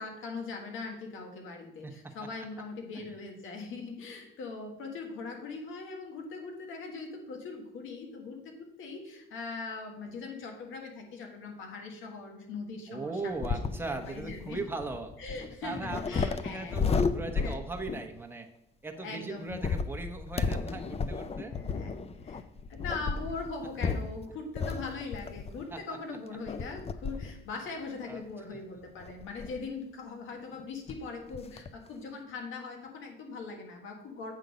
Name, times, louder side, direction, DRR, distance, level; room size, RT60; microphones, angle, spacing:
voice 1, 0.0-14.6 15.2-16.9 17.4-17.6 19.0-19.8 21.4-22.4 22.7-34.3, left 4 dB, 85° left, 3 dB, 1.5 m, -41 dB
voice 2, 12.9-15.1 15.6-18.5 18.8-21.5 25.7-25.8 28.1-28.2, right 3 dB, 10° right, 2 dB, 1.1 m, -38 dB
sound 1, 13.3-18.2 19.5-25.7 26.5-27.4 27.8-27.9 29.0-29.7 30.6-30.7 30.9-31.0 31.3-31.7, left 5 dB, 30° left, 0.5 m, -33 dB
8.1 x 3.7 x 6.3 m, 0.85 s
cardioid pair, 90°, 20 cm